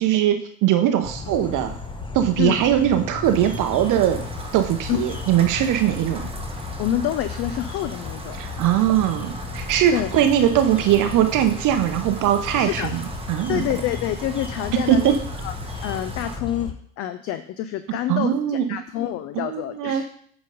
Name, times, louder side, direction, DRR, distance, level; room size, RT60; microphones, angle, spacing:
voice 1, 0.0-1.7 2.1-4.2 4.5-6.3 8.4-13.0 13.3-13.7 14.9-15.1 18.1-18.6 19.5-20.0, right 11 dB, 40° right, 7 dB, 0.8 m, -20 dB
sound 1, 1.0-16.7, left 4 dB, 10° left, 1.0 m, -34 dB
Rain, 3.2-16.4, right 2 dB, 10° right, 1.1 m, -40 dB
voice 2, 6.8-8.4 9.9-10.1 12.6-12.9 13.5-15.1 15.4-20.1, left 12 dB, 30° left, 11 dB, 0.4 m, -27 dB
8.8 x 4.0 x 5.2 m, 0.63 s
figure-of-eight pair, 65°, 49 cm